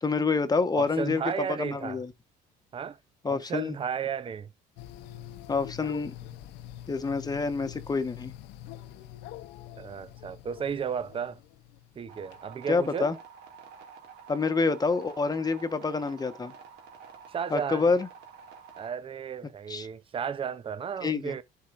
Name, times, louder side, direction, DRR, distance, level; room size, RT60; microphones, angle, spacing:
voice 1, 0.0-2.1 3.2-3.7 5.5-6.1 6.9-8.3 12.7-13.1 14.3-16.5 17.5-18.1 19.7-19.9 21.0-21.3, left 4 dB, 25° left, 1.2 m, -27 dB
voice 2, 0.7-2.0 2.7-3.0 3.3-4.5 9.8-11.4 12.0-13.1 17.3-17.9 18.8-21.4, right 7 dB, 30° right, 0.7 m, -34 dB
sound 1, 4.8-12.4, left 12 dB, 90° left, 0.7 m, -45 dB
sound 2, 12.1-18.9, right 6 dB, 80° right, 2.3 m, -49 dB
11.5 x 4.7 x 2.5 m
cardioid pair, 110°, 17 cm